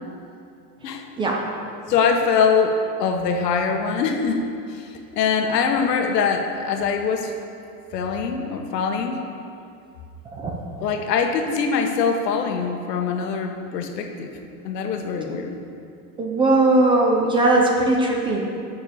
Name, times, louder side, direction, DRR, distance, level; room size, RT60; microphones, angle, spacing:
voice 1, 1.9-7.3 7.9-9.2 10.8-14.3 14.6-15.6, left 5 dB, 90° left, 4 dB, 1.4 m, -23 dB
voice 2, 16.2-18.4, right 2 dB, 10° right, -1 dB, 0.4 m, -19 dB
10.0 x 6.6 x 6.8 m, 2.5 s
supercardioid pair, 150°, 47 cm